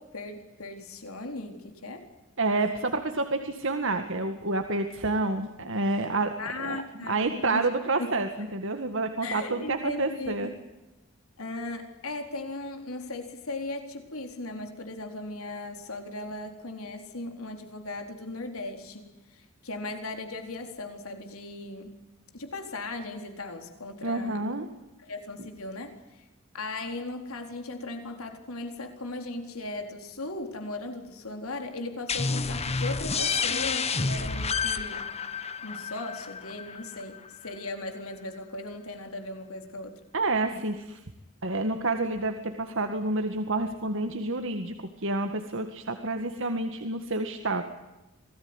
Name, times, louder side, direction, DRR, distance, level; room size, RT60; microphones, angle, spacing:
voice 1, 0.0-2.1 6.4-7.6 8.0-8.1 9.2-10.5 11.4-22.0 22.3-24.4 25.0-26.3 26.5-35.1 35.6-40.0, left 2 dB, 80° left, 5 dB, 4.1 m, -37 dB
voice 2, 2.4-6.3 6.6-6.8 7.1-10.5 24.0-24.7 40.1-41.0 41.4-47.6, right 2 dB, 60° right, 6 dB, 1.9 m, -29 dB
sound 1, 32.1-37.5, left 4 dB, 30° left, 1.5 m, -30 dB
27.5 x 19.0 x 9.8 m, 1.0 s
head